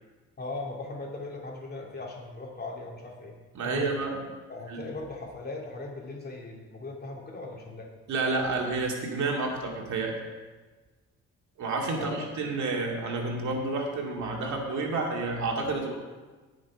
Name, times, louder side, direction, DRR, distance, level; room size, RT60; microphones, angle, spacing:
voice 1, 0.4-3.3 3.6-4.0 4.5-7.9 11.9-12.3, left 3 dB, 30° left, -1 dB, 2.9 m, -38 dB
voice 2, 3.5-4.2 4.7-4.9 8.1-10.2 11.6-15.9, right 3 dB, 70° right, 0 dB, 2.4 m, -30 dB
17.5 x 6.4 x 4.8 m, 1.3 s
cardioid pair, 90°, 30 cm